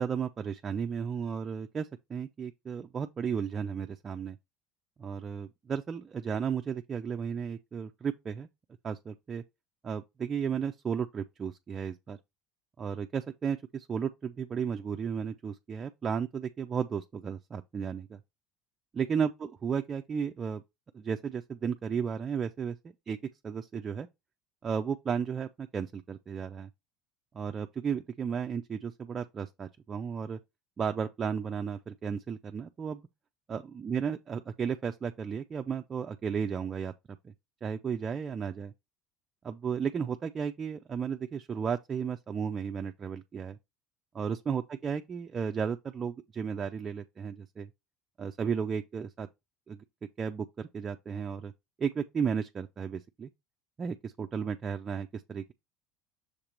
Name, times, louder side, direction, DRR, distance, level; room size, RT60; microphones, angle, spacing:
voice 1, 0.0-4.4 5.0-8.5 8.8-9.4 9.8-12.2 12.8-18.2 18.9-20.6 20.9-22.8 23.1-23.2 23.4-24.1 24.6-26.7 27.3-30.4 30.8-33.0 33.5-36.9 37.2-37.3 37.6-38.7 39.4-43.6 44.1-47.7 48.2-49.3 49.7-49.8 50.2-51.5 51.8-53.3 53.8-55.5, right 6 dB, 35° right, 0.5 m, -34 dB
6.6 x 2.9 x 5.0 m
hypercardioid pair, 70°, 0 cm